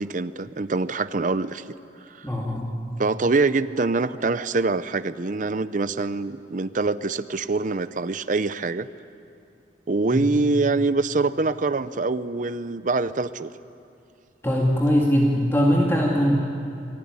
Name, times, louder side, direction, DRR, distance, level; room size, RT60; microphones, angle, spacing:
voice 1, 0.0-1.6 2.2-2.3 3.0-8.9 9.9-13.5, right 3 dB, 45° right, 13 dB, 0.6 m, -24 dB
voice 2, 2.2-2.7 10.1-10.3 14.4-16.4, equal, 15° left, -2 dB, 2.2 m, -21 dB
28.5 x 19.0 x 9.6 m, 2.6 s
head